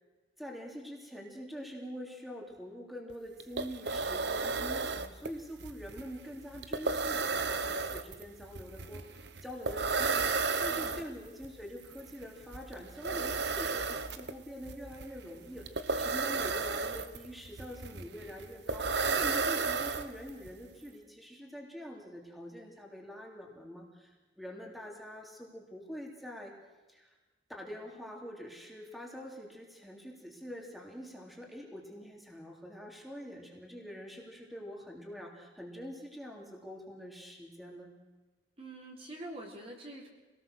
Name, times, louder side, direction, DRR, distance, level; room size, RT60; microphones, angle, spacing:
voice 1, 0.4-26.5 26.9-27.1 27.5-37.9, equal, ahead, -1 dB, 3.2 m, -45 dB
sound 1, 3.1-3.2 3.4-20.5, right 4 dB, 60° right, 1.0 m, -34 dB
voice 2, 10.7-11.0 38.6-40.1, right 1 dB, 30° right, -1 dB, 3.7 m, -45 dB
25.5 x 18.5 x 6.5 m, 1.2 s
head